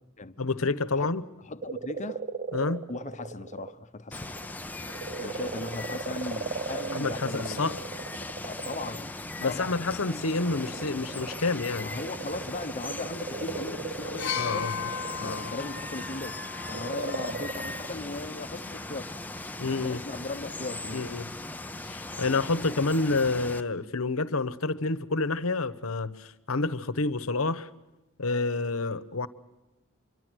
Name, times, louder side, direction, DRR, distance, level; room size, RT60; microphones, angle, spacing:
voice 1, 0.4-1.2 2.5-2.9 6.9-7.8 9.4-11.9 14.4-14.9 15.2-15.5 19.6-20.0 20.9-21.3 21.8-27.7 28.2-29.3, left 3 dB, 80° left, 1.2 m, -29 dB
voice 2, 1.4-2.2 2.9-4.2 5.2-7.7 8.4-9.8 11.8-14.9 15.2-16.4 16.7-19.1 19.6-21.0, left 3 dB, 35° left, 1.0 m, -38 dB
sound 1, 1.6-3.7 4.2-9.1 9.9-16.1 16.6-18.2, right 4 dB, 40° right, 0.9 m, -38 dB
Water, 4.1-23.6, left 2 dB, 10° left, 0.8 m, -39 dB
sound 2, 14.2-18.0 19.0-19.2, left 8 dB, 55° left, 1.1 m, -37 dB
26.0 x 24.0 x 6.4 m
head